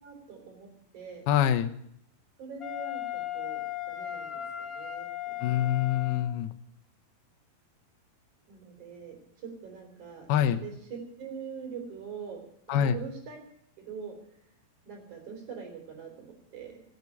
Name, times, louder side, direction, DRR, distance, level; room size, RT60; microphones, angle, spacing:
voice 1, 0.0-0.7 0.9-1.2 2.4-3.6 3.9-5.7 8.5-12.4 12.7-13.4 13.8-14.1 14.8-16.8, right 6 dB, 50° right, 2 dB, 4.8 m, -43 dB
voice 2, 1.3-1.7 5.4-6.5 10.3-10.6 12.7-13.0, left 10 dB, 85° left, 9 dB, 2.8 m, -25 dB
Wind instrument woodwind instrument, 2.6-6.4, left 12 dB, 40° left, 0.8 m, -36 dB
16.5 x 8.3 x 9.7 m, 0.70 s
omnidirectional pair, 4.4 m